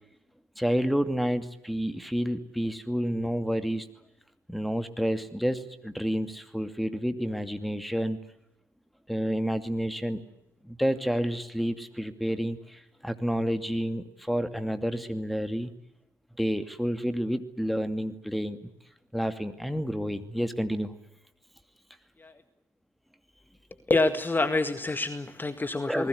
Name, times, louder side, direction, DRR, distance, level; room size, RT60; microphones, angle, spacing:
voice 1, 0.6-3.9 4.5-8.2 9.1-10.2 10.6-15.7 16.4-18.6 19.1-20.9 25.7-26.1, equal, ahead, 11 dB, 2.5 m, -29 dB
voice 2, 23.9-26.1, left 2 dB, 20° left, 11 dB, 1.9 m, -27 dB
29.5 x 20.5 x 8.1 m, 0.82 s
figure-of-eight pair, 55°, 10 cm